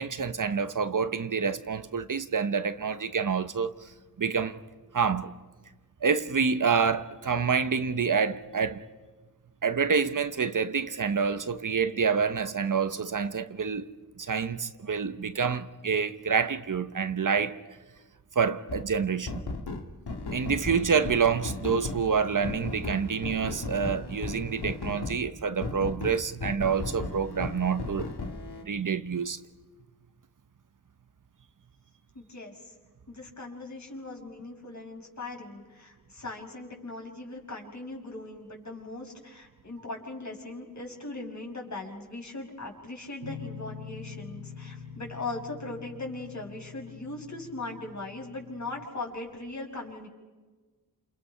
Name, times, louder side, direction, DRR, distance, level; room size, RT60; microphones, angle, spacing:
voice 1, 0.0-3.7 4.2-4.6 4.9-5.3 6.0-8.8 9.6-13.9 14.2-17.6 18.3-19.4 20.3-28.1 28.6-29.4, right 6 dB, 55° right, 1.0 m, -27 dB
sound 1, 18.7-18.9 19.3-25.2 25.6-28.6, left 3 dB, 75° left, 2.4 m, -36 dB
voice 2, 32.1-32.7 33.1-50.1, left 2 dB, 45° left, 5.9 m, -39 dB
sound 2, 43.2-48.8, left 6 dB, 75° right, 2.6 m, -45 dB
30.0 x 28.5 x 5.7 m
wide cardioid pair, 110°, 39 cm